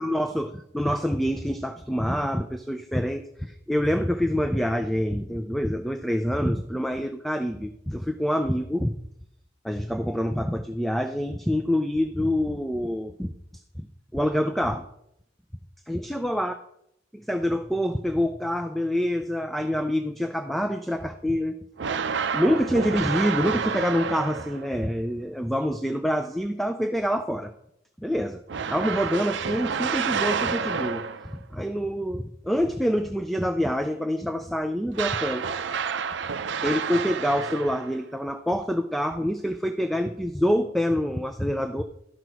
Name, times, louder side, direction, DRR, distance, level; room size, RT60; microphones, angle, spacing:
voice 1, 0.0-8.9 9.6-13.3 13.8-13.9 14.1-14.9 15.9-16.5 17.1-21.6 22.3-27.5 28.0-28.4 28.7-31.0 31.3-35.5 36.6-41.8, equal, ahead, 7 dB, 0.4 m, -26 dB
sound 1, 21.8-24.8 28.5-31.4 34.9-38.0, right 6 dB, 60° right, 0.5 m, -29 dB
12.0 x 6.0 x 4.6 m, 0.76 s
head